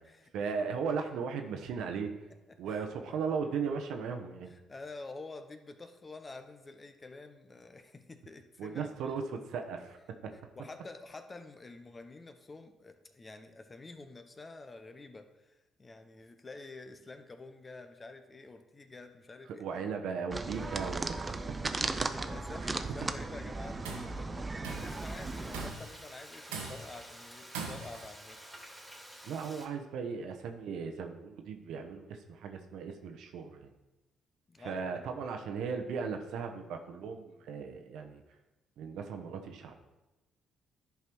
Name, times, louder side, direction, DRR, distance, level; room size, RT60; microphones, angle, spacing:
voice 1, 0.3-2.1 2.6-4.5 8.6-10.0 10.2-10.3 19.6-22.1 22.8-22.9 29.2-33.7 34.6-38.2 38.8-39.8, right 5 dB, 70° right, 5 dB, 1.0 m, -37 dB
voice 2, 2.5-3.2 4.5-9.1 10.5-19.9 20.5-20.7 21.7-28.4 34.5-35.0, left 3 dB, 30° left, 7 dB, 1.1 m, -49 dB
sound 1, 20.3-25.7, right 3 dB, 30° right, 0.7 m, -36 dB
Tools, 23.6-24.2 24.6-25.0 25.5-26.0 26.5-27.0 27.5-28.1, right 4 dB, 90° right, 1.2 m, -41 dB
Frying (food), 24.7-29.7, equal, 5° right, 2.4 m, -50 dB
11.0 x 4.7 x 4.6 m, 1.0 s
hypercardioid pair, 50°, 0 cm